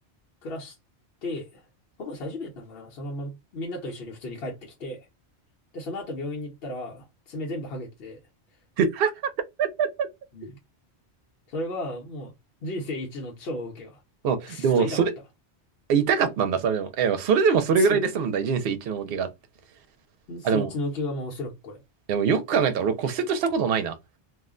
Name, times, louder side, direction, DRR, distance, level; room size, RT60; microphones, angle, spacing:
voice 1, 0.4-0.7 1.2-1.6 2.0-5.1 5.7-8.2 10.3-10.6 11.5-12.3 12.6-14.0 14.5-15.0 17.8-18.0 20.3-21.8, left 1 dB, 65° left, 1.0 m, -34 dB
voice 2, 8.8-9.1 9.6-10.1 14.2-15.1 15.9-19.3 20.4-20.7 22.1-24.0, right 6 dB, 65° right, 0.8 m, -23 dB
2.4 x 2.1 x 3.6 m
omnidirectional pair, 1.1 m